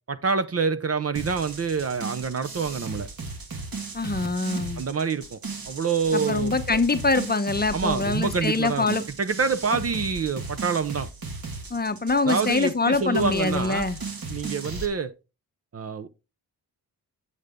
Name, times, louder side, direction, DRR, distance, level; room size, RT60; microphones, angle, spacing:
voice 1, 0.1-3.1 4.8-5.4 5.7-6.8 7.7-8.9 9.2-11.1 12.3-13.9 14.3-15.1 15.7-16.1, right 5 dB, 35° right, 0.6 m, -26 dB
sound 1, 1.1-14.9, right 3 dB, 60° right, 2.1 m, -36 dB
voice 2, 3.9-4.8 6.1-9.0 11.7-14.0, left 3 dB, 25° left, 0.8 m, -24 dB
8.7 x 6.6 x 3.6 m
cardioid pair, 100°, 40 cm